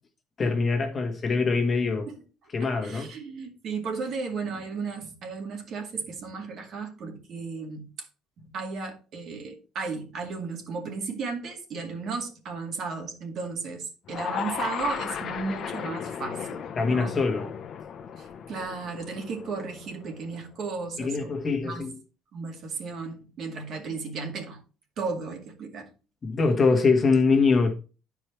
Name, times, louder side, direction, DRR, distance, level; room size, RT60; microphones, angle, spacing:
voice 1, 0.4-2.1 2.5-3.1 16.8-17.5 21.0-21.9 26.2-27.7, left 4 dB, 30° left, 1.5 m, -23 dB
voice 2, 2.6-7.9 8.5-17.2 18.2-21.3 21.6-21.9 22.3-24.6 25.0-25.9, right 4 dB, 50° right, 2.2 m, -35 dB
sound 1, 14.1-20.3, left 7 dB, 45° left, 0.9 m, -35 dB
11.0 x 4.8 x 4.5 m
cardioid pair, 130°, 0 cm